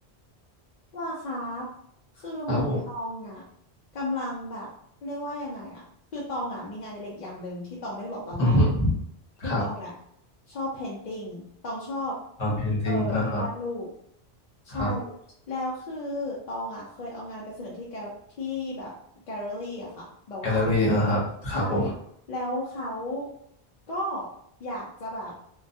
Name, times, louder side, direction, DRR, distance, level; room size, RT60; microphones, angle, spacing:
voice 1, 0.9-1.7 2.1-3.5 3.9-4.7 5.0-5.8 6.1-8.6 9.6-9.9 10.5-12.2 12.8-13.9 14.6-15.1 15.5-18.9 19.3-20.7 21.5-21.9 22.3-23.3 23.9-24.3 24.6-25.3, left 1 dB, 55° left, -4 dB, 0.5 m, -34 dB
voice 2, 2.5-2.8 8.4-8.9 9.4-9.6 12.4-13.4 14.7-14.9 20.4-21.9, left 1 dB, 40° left, -6 dB, 0.9 m, -24 dB
2.2 x 2.1 x 2.6 m, 0.71 s
omnidirectional pair, 1.1 m